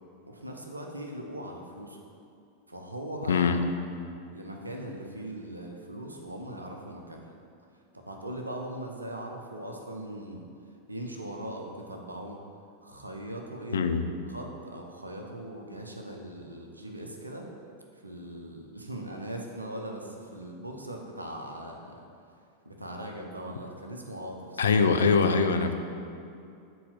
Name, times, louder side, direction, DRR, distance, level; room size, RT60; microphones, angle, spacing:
voice 1, 0.3-2.0 2.7-3.5 4.3-7.3 7.9-10.4 10.9-12.4 12.8-13.8 14.3-17.5 17.9-22.0 22.6-24.8, right 1 dB, 80° right, 1 dB, 0.8 m, -40 dB
voice 2, 3.3-3.6 13.7-14.0 24.6-25.7, left 5 dB, 65° left, 7 dB, 0.5 m, -23 dB
7.1 x 4.1 x 6.5 m, 2.5 s
figure-of-eight pair, 90°, 0 cm